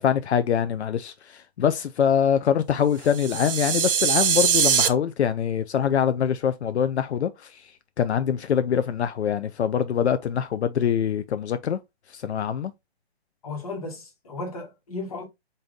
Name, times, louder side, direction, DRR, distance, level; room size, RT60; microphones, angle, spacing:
voice 1, 0.0-7.7 8.0-11.8 12.1-12.7, left 8 dB, 80° left, 0.5 m, -24 dB
sound 1, 3.1-4.9, right 7 dB, 60° right, 0.5 m, -22 dB
voice 2, 13.4-15.2, left 3 dB, 35° left, 1.2 m, -35 dB
3.9 x 2.6 x 3.5 m
hypercardioid pair, 165°, 33 cm